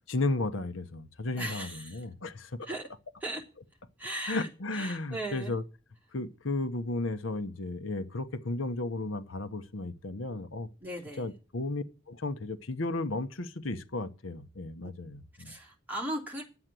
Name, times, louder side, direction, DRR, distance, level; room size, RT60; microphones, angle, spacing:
voice 1, 0.1-2.7 4.3-5.6 6.1-10.7 11.2-15.5, left 2 dB, 90° left, 1.1 m, -34 dB
voice 2, 1.4-2.1 2.6-2.8 3.2-3.4 4.0-5.5 10.8-11.4 14.8-14.9 15.4-16.4, right 1 dB, 10° right, 3.3 m, -38 dB
11.5 x 8.0 x 7.6 m
head